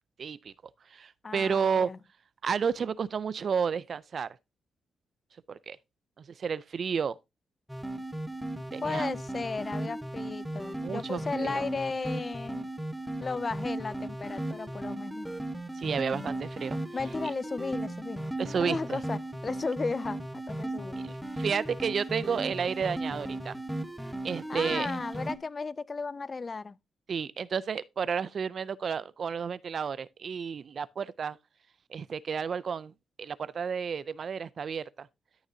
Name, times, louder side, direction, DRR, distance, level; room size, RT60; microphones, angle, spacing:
voice 1, 0.2-0.5 0.9-1.9 2.4-4.3 5.5-5.8 6.4-7.2 8.7-9.1 10.8-11.6 15.7-16.8 18.4-19.0 21.0-23.6 24.2-24.9 27.1-31.4 31.9-32.9 33.2-35.1, right 6 dB, 55° right, 0.4 m, -31 dB
voice 2, 1.2-2.0 8.8-12.7 13.2-15.4 16.9-18.2 18.6-21.0 24.5-26.8, left 4 dB, 35° left, 0.4 m, -35 dB
sound 1, 7.7-25.3, right 1 dB, 5° right, 1.1 m, -36 dB
12.5 x 6.5 x 2.7 m
cardioid pair, 90°, 0 cm